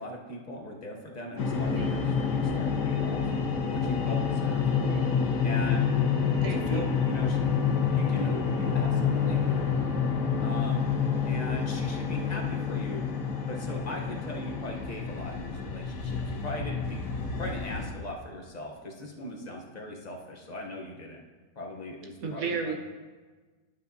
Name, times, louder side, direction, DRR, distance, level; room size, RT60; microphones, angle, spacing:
voice 1, 0.0-3.2 3.7-4.7 5.4-5.9 6.5-7.4 7.8-9.7 10.4-10.9 11.2-13.1 13.5-17.1 17.3-21.2 21.6-22.8, left 1 dB, 35° left, -1 dB, 0.8 m, -39 dB
sound 1, 1.4-17.9, left 6 dB, 80° left, 1.5 m, -28 dB
voice 2, 4.8-5.2 6.1-6.9 22.2-22.8, right 4 dB, 65° right, 3 dB, 1.1 m, -34 dB
12.0 x 6.8 x 2.7 m, 1.4 s
omnidirectional pair, 1.8 m